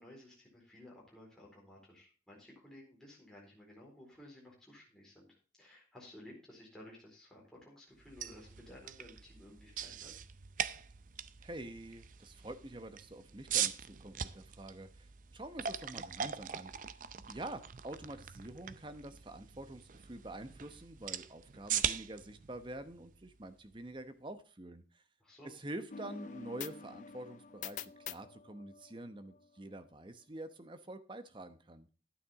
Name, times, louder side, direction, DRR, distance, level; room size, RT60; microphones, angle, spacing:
voice 1, 0.0-10.1 25.2-25.5, left 1 dB, 5° left, -4 dB, 4.3 m, -55 dB
sound 1, 8.0-23.9, right 9 dB, 50° right, 0.5 m, -41 dB
voice 2, 11.4-16.7 17.3-25.0 25.4-31.9, right 1 dB, 30° right, 10 dB, 0.9 m, -47 dB
sound 2, 25.9-29.5, left 7 dB, 45° left, 0.4 m, -47 dB
11.0 x 9.4 x 3.6 m, 0.36 s
head